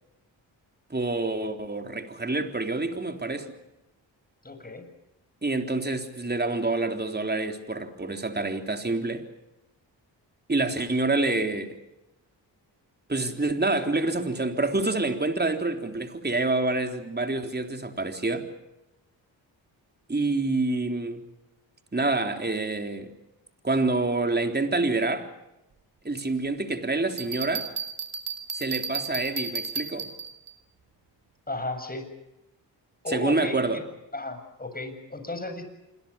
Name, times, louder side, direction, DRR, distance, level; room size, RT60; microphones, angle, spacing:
voice 1, 0.9-3.5 5.4-9.2 10.5-11.8 13.1-18.5 20.1-21.2 21.9-23.1 23.6-25.3 26.0-27.7 28.5-30.1 33.1-33.8, right 2 dB, 20° right, 5 dB, 3.7 m, -27 dB
voice 2, 4.4-4.9 31.5-32.1 33.0-33.8 34.1-35.6, left 2 dB, 20° left, 7 dB, 7.5 m, -34 dB
Bell, 27.2-30.5, right 5 dB, 60° right, 2.8 m, -33 dB
28.0 x 21.5 x 7.1 m, 0.93 s
cardioid pair, 60°, 45 cm